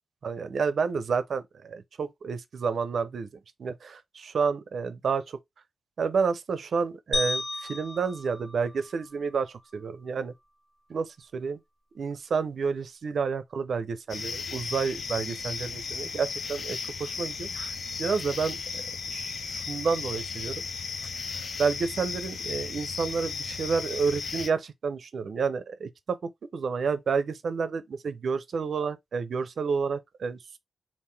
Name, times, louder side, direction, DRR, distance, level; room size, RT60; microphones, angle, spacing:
voice 1, 0.2-3.3 3.6-5.4 6.0-10.3 10.9-11.6 11.9-18.8 19.1-20.6 21.3-26.2 26.5-30.6, right 5 dB, 60° right, 0.4 m, -30 dB
sound 1, 7.1-9.5, left 2 dB, 25° left, 1.4 m, -34 dB
sound 2, 14.1-24.5, left 5 dB, 50° left, 0.4 m, -35 dB
3.7 x 2.5 x 3.2 m
wide cardioid pair, 170°, 0 cm